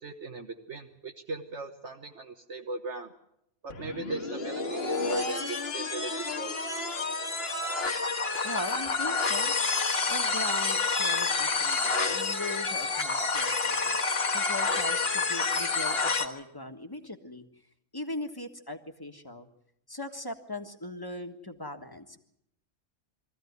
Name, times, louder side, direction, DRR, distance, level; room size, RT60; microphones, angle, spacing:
voice 1, 0.0-3.1 3.6-6.7, right 3 dB, 65° right, 3 dB, 1.6 m, -38 dB
sound 1, 3.7-16.3, left 4 dB, 50° left, 1.9 m, -29 dB
voice 2, 8.4-9.5 10.1-14.0 14.3-17.4 17.9-19.5 19.9-22.2, left 1 dB, 20° left, 5 dB, 1.5 m, -39 dB
23.0 x 15.0 x 9.5 m, 0.78 s
omnidirectional pair, 1.3 m